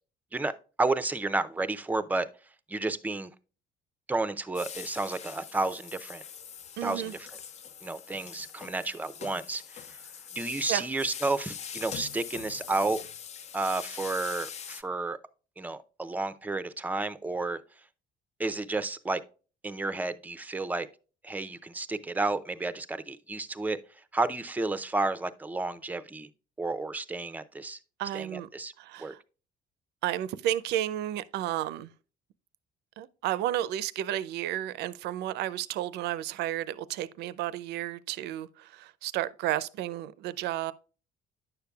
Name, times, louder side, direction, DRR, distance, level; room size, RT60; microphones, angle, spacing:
voice 1, 0.8-2.3 2.7-3.3 4.1-6.2 6.8-7.1 7.8-9.6 10.4-13.0 13.5-15.2 15.6-17.6 18.4-19.2 19.6-20.9 21.2-23.8 24.1-26.3 26.6-27.8 28.1-28.7 29.0-29.1, right 2 dB, 10° right, 0.5 m, -31 dB
sound 1, 4.5-14.8, left 8 dB, 40° left, 0.5 m, -43 dB
voice 2, 6.8-7.1 10.7-10.8 28.0-28.5 28.8-29.2 30.0-31.9 33.0-40.7, right 13 dB, 80° right, 0.5 m, -32 dB
9.9 x 6.7 x 2.3 m
cardioid pair, 110°, 17 cm